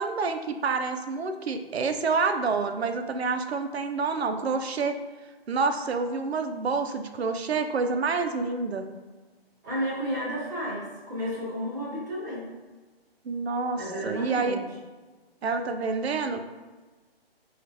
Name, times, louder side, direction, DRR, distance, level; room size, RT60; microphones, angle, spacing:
voice 1, 0.0-5.0 5.5-8.9 13.2-14.6 15.4-16.4, right 4 dB, 85° right, 7 dB, 0.5 m, -28 dB
voice 2, 9.6-12.5 13.8-14.7, equal, 20° right, -8 dB, 0.9 m, -32 dB
4.5 x 2.4 x 2.6 m, 1.3 s
hypercardioid pair, 170°, 31 cm